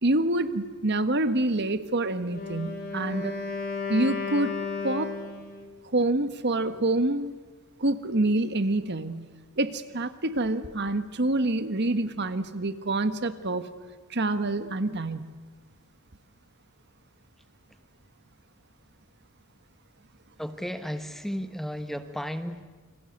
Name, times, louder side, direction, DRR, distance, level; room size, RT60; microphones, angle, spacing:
voice 1, 0.0-3.3 3.9-5.2 5.9-7.3 7.8-9.3 9.6-13.7 14.1-15.3, right 2 dB, 55° right, 10 dB, 1.5 m, -27 dB
Wind instrument woodwind instrument, 2.2-5.7, left 4 dB, 50° left, 4.1 m, -34 dB
voice 2, 20.4-22.6, equal, ahead, 8 dB, 1.2 m, -34 dB
28.5 x 25.5 x 8.1 m, 1.4 s
head